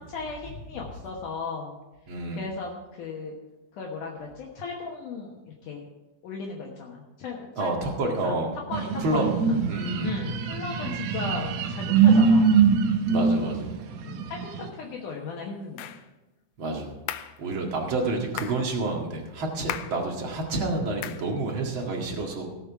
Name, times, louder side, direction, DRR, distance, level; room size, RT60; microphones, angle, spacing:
voice 1, 0.0-1.8 2.3-3.3 3.7-5.9 6.2-8.4 8.7-9.6 10.0-12.7 14.0-15.9, left 4 dB, 65° left, -2 dB, 2.5 m, -36 dB
voice 2, 2.1-2.4 7.6-8.6 9.0-9.2 9.7-10.1 13.1-13.8 16.6-16.9 17.4-22.5, right 2 dB, 40° right, 0 dB, 2.1 m, -29 dB
sound 1, 8.7-14.7, right 5 dB, 75° right, 1.5 m, -23 dB
sound 2, 15.8-16.0 17.1-17.4 18.4-18.6 19.7-20.0 21.0-21.3, left 12 dB, 85° left, 1.9 m, -35 dB
18.0 x 7.4 x 4.7 m, 1.0 s
omnidirectional pair, 4.3 m